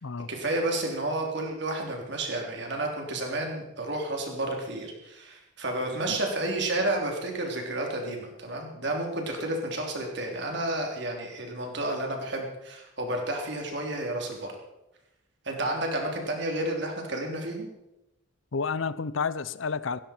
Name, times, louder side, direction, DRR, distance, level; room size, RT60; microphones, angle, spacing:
voice 1, 0.3-14.5 15.4-17.7, right 1 dB, 60° right, 1 dB, 3.4 m, -31 dB
voice 2, 18.5-20.0, left 5 dB, 75° left, 17 dB, 0.7 m, -30 dB
16.5 x 16.0 x 4.5 m, 0.92 s
head